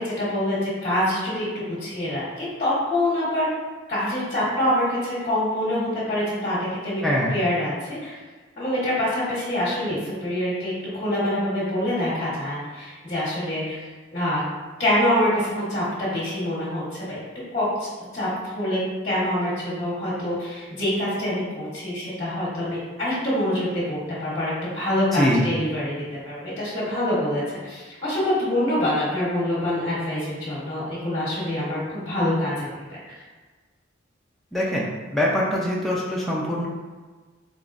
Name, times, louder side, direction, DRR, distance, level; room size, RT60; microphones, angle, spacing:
voice 1, 0.0-3.5 3.9-7.0 7.3-8.2 8.6-13.8 14.1-14.4 14.8-17.2 17.5-18.8 19.0-33.2, left 1 dB, 30° left, -9 dB, 1.1 m, -25 dB
voice 2, 7.0-7.3 25.1-25.5 34.5-36.7, equal, ahead, -5 dB, 0.4 m, -23 dB
3.9 x 3.5 x 2.5 m, 1.4 s
head